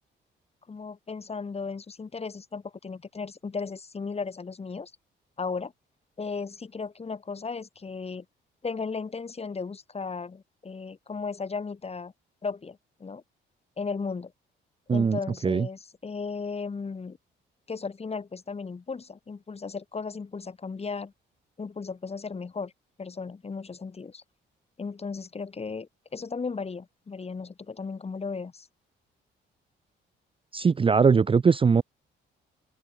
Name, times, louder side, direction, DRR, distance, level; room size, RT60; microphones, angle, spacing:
voice 1, 0.7-4.9 5.4-5.7 6.2-8.2 8.6-12.1 12.4-13.2 13.8-14.3 14.9-17.2 17.7-21.1 21.6-22.7 23.0-24.2 24.8-28.7, left 4 dB, 30° left, 3.2 m, -35 dB
voice 2, 14.9-15.7 30.5-31.8, right 5 dB, 25° right, 0.6 m, -21 dB
open air
cardioid pair, 90°, 20 cm